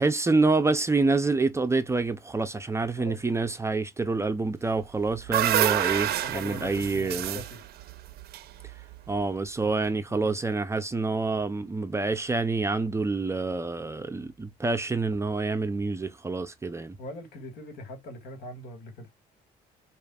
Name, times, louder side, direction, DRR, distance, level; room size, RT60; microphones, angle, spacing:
voice 1, 0.0-7.4 9.1-17.0, right 3 dB, 15° right, 0.5 m, -27 dB
sound 1, 4.8-9.1, right 12 dB, 70° right, 0.6 m, -28 dB
voice 2, 6.2-7.6 9.6-10.4 17.0-19.1, left 1 dB, 70° left, 2.1 m, -42 dB
5.0 x 2.5 x 2.4 m
cardioid pair, 110°, 17 cm